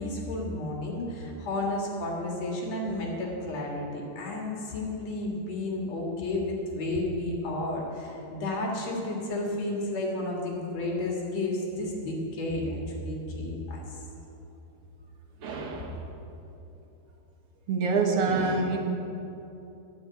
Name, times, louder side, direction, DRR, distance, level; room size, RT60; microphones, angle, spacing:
voice 1, 0.0-13.8, left 2 dB, 65° left, -1 dB, 3.0 m, -32 dB
voice 2, 15.4-16.1 17.7-18.8, right 4 dB, 55° right, 2 dB, 2.0 m, -26 dB
10.5 x 7.6 x 9.4 m, 2.9 s
omnidirectional pair, 3.3 m